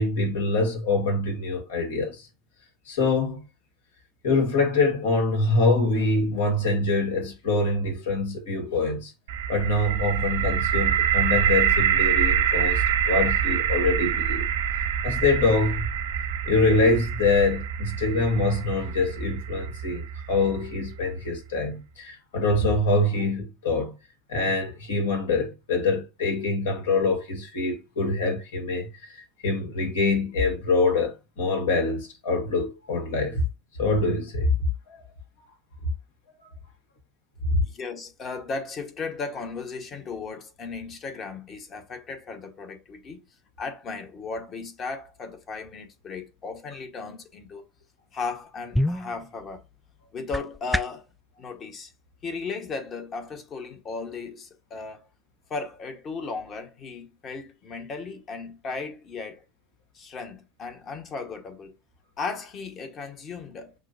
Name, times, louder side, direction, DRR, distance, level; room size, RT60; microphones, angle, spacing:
voice 1, 0.0-2.3 2.9-3.4 4.2-9.1 9.5-14.5 15.0-15.9 16.5-24.0 24.3-33.4 33.8-34.5 34.9-35.0 37.5-37.6, left 3 dB, 75° left, 1.6 m, -25 dB
sound 1, 9.3-21.1, right 8 dB, 75° right, 0.5 m, -26 dB
voice 2, 37.6-43.2 43.6-47.7 48.1-49.6 50.1-51.0 51.4-51.9 52.2-55.1 55.5-59.4 59.9-61.7 62.2-63.7, left 4 dB, 35° left, 1.2 m, -36 dB
sound 2, 48.4-51.1, left 1 dB, ahead, 0.3 m, -30 dB
6.0 x 2.2 x 2.6 m
hypercardioid pair, 80°, 0 cm